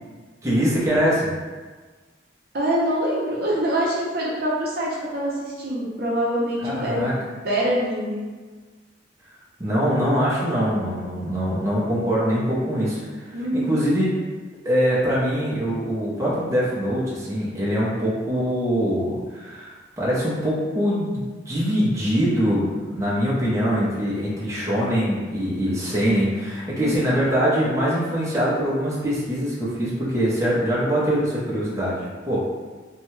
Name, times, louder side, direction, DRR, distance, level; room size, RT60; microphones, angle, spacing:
voice 1, 0.4-1.3 6.6-7.1 9.6-14.1 14.6-32.4, equal, 15° right, -7 dB, 0.6 m, -23 dB
voice 2, 2.5-7.1 7.4-8.2 13.3-13.9 26.7-27.2, equal, 55° right, -4 dB, 0.6 m, -25 dB
2.7 x 2.2 x 3.1 m, 1.4 s
head